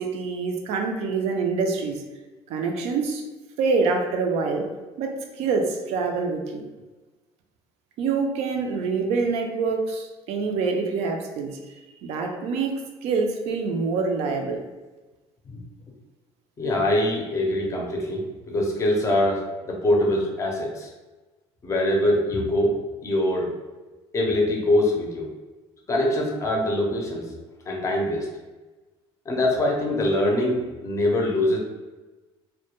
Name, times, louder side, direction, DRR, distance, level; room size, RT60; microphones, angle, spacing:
voice 1, 0.0-2.0 2.5-3.2 3.6-4.7 5.0-6.6 8.0-14.6, right 4 dB, 70° right, 4 dB, 0.4 m, -26 dB
voice 2, 16.6-20.9 21.6-22.8 23.0-23.5 24.1-25.3 25.9-27.3 27.7-28.3 29.3-31.6, left 1 dB, 25° left, 0 dB, 0.5 m, -23 dB
2.1 x 2.1 x 2.9 m, 1.2 s
cardioid pair, 140°, 11 cm